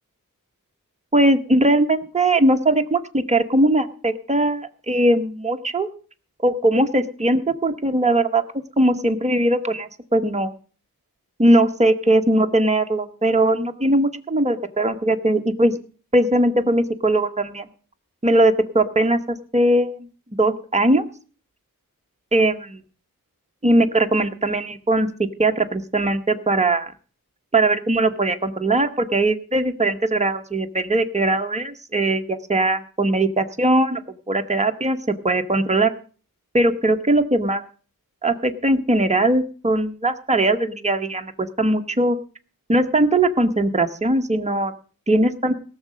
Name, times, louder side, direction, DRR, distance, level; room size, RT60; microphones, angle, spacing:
voice 1, 1.1-5.9 6.4-8.4 8.8-10.5 11.4-15.7 16.1-17.7 18.2-20.1 20.4-21.0 22.3-22.8 23.6-26.9 27.5-34.0 34.3-35.9 36.5-37.6 38.2-42.2 42.7-44.7 45.1-45.5, right 1 dB, 20° right, 6 dB, 1.0 m, -20 dB
17.5 x 6.5 x 6.3 m, 0.41 s
wide cardioid pair, 60°, 35 cm